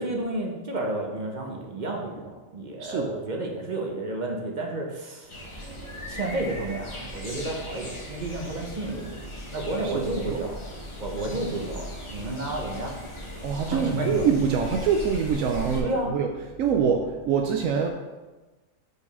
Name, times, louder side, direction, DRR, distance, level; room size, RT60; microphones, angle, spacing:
voice 1, 0.0-5.3 6.1-10.6 11.0-13.0 13.7-14.3 15.8-16.1, right 2 dB, 40° right, 1 dB, 0.9 m, -31 dB
sound 1, 5.3-15.8, equal, 25° left, 1.0 m, -38 dB
voice 2, 9.8-10.4 13.4-16.3 16.6-17.9, right 6 dB, 85° right, 3 dB, 1.0 m, -25 dB
4.9 x 4.6 x 5.4 m, 1.2 s
omnidirectional pair, 1.4 m